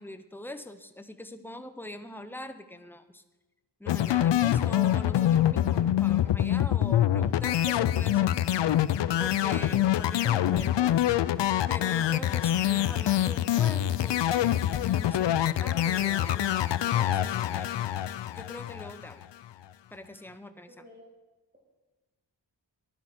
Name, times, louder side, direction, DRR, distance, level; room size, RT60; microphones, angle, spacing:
voice 1, 0.0-3.2 3.8-8.5 9.2-11.0 11.7-17.7 18.3-19.3 19.9-20.7, left 1 dB, 5° left, 9 dB, 0.7 m, -43 dB
sound 1, 3.9-19.2, left 12 dB, 75° left, 0.5 m, -25 dB
voice 2, 9.5-10.0 20.7-21.0, left 1 dB, 20° right, -4 dB, 2.5 m, -49 dB
19.5 x 11.0 x 4.3 m, 1.2 s
wide cardioid pair, 125°, 43 cm